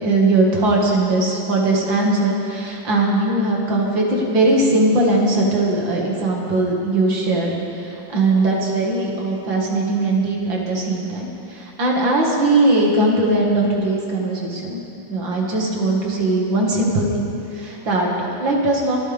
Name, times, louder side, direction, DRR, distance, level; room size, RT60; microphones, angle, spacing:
voice 1, 0.0-14.8 15.1-19.0, right 2 dB, 75° right, -2 dB, 2.9 m, -20 dB
24.5 x 13.5 x 3.6 m, 2.7 s
omnidirectional pair, 2.1 m